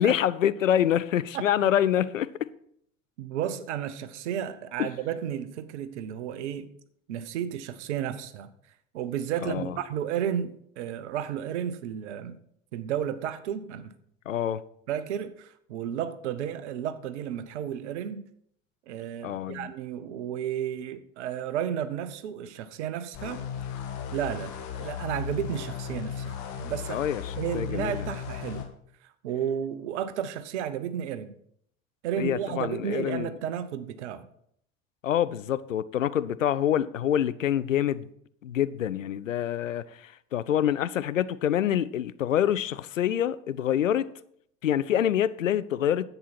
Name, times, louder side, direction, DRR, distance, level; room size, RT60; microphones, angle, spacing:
voice 1, 0.0-2.3 4.8-4.9 9.4-9.8 14.3-14.6 19.2-19.7 26.9-28.1 32.2-33.3 35.0-38.1 38.4-44.1 44.6-46.1, left 10 dB, 80° left, 0.5 m, -26 dB
voice 2, 3.2-6.7 7.1-8.5 8.9-12.4 12.7-13.9 14.9-18.3 18.9-23.5 24.1-24.5 24.8-27.0 27.4-28.7 29.0-31.3 32.0-34.3, right 9 dB, 65° right, 0.9 m, -32 dB
sound 1, 23.1-28.7, left 8 dB, 50° left, 1.5 m, -36 dB
10.5 x 8.0 x 4.3 m
figure-of-eight pair, 70°, 38 cm